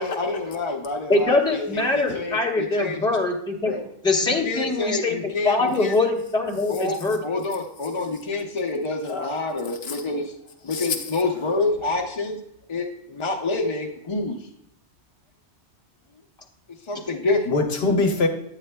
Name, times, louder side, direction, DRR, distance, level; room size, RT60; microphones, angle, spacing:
voice 1, 0.0-3.0 3.7-3.8 4.2-6.0 6.7-10.3 10.6-12.4 12.7-14.4 16.9-17.6, left 2 dB, 35° left, 1 dB, 0.5 m, -27 dB
voice 2, 1.1-3.7 4.0-5.2 5.4-7.2 16.9-17.0, left 3 dB, 5° left, -1 dB, 0.8 m, -23 dB
voice 3, 9.1-10.0 10.7-11.0 17.5-18.3, left 3 dB, 65° left, 5 dB, 0.9 m, -25 dB
9.3 x 8.0 x 2.2 m, 0.77 s
omnidirectional pair, 1.1 m